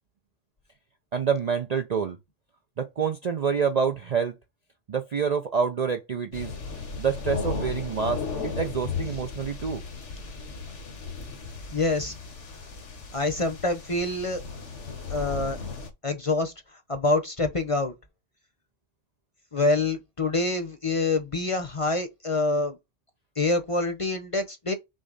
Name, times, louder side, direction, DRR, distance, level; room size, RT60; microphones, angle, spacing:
voice 1, 1.1-2.2 2.8-4.3 4.9-6.5 7.0-9.8, right 6 dB, 50° right, 0.5 m, -27 dB
sound 1, 6.3-15.9, left 4 dB, 75° left, 1.5 m, -35 dB
voice 2, 11.7-12.2 13.1-14.4 15.1-15.6 16.0-16.5 16.9-17.9 19.5-22.8 23.4-24.7, left 2 dB, 30° left, 0.8 m, -26 dB
6.3 x 2.1 x 3.9 m
omnidirectional pair, 1.2 m